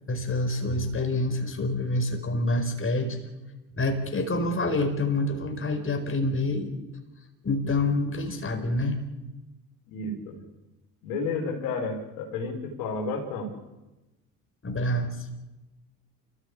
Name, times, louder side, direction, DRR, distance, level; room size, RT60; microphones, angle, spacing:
voice 1, 0.1-3.2 3.7-6.7 7.4-9.0 14.6-15.1, left 2 dB, 25° left, 4 dB, 5.1 m, -27 dB
voice 2, 9.9-10.4 11.0-13.5, left 3 dB, 65° left, 1 dB, 5.0 m, -31 dB
29.0 x 15.5 x 8.5 m, 1.1 s
figure-of-eight pair, 55°, 48 cm